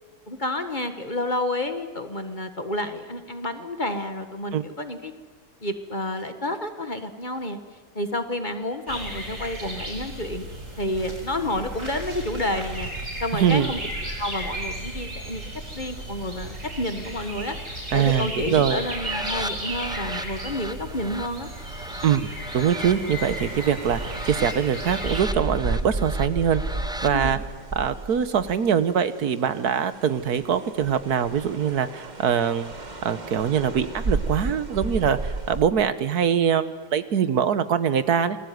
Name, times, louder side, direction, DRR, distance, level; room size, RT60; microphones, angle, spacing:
voice 1, 0.3-5.1 5.6-7.6 7.9-10.5 10.8-12.9 13.2-13.8 14.2-21.5 27.1-27.4, left 1 dB, 30° left, 8 dB, 1.6 m, -30 dB
sound 1, 8.9-25.2, right 1 dB, 50° right, 7.4 m, -35 dB
voice 2, 13.3-13.7 17.9-18.8 22.0-27.4 27.7-32.7 33.0-38.4, right 8 dB, 70° right, 13 dB, 1.5 m, -23 dB
sound 2, 18.6-27.1, equal, 5° right, 0.4 m, -37 dB
sound 3, 22.8-29.0 29.5-35.7, right 2 dB, 30° right, 1.5 m, -33 dB
27.5 x 20.5 x 9.4 m, 1.4 s
omnidirectional pair, 1.7 m